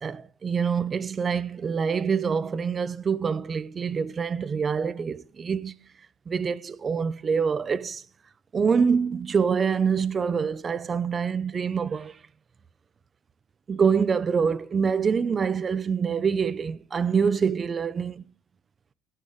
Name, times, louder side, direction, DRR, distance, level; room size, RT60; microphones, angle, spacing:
voice 1, 0.0-5.7 6.3-8.0 8.5-12.2 13.7-18.2, right 6 dB, 30° right, 0.7 m, -25 dB
18.0 x 11.0 x 3.2 m
cardioid pair, 135°, 0 cm